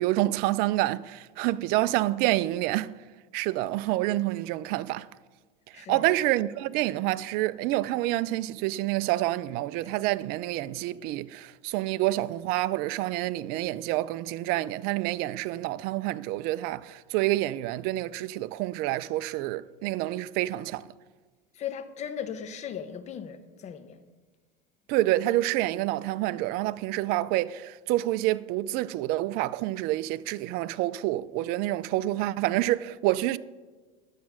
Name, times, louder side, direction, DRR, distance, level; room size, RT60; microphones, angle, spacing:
voice 1, 0.0-2.9 3.3-5.1 5.7-20.9 24.9-33.4, right 16 dB, 50° right, 0.4 m, -28 dB
voice 2, 5.7-6.1 21.5-24.0, left 8 dB, 35° left, 0.9 m, -37 dB
12.0 x 7.3 x 6.1 m
supercardioid pair, 120°, 20 cm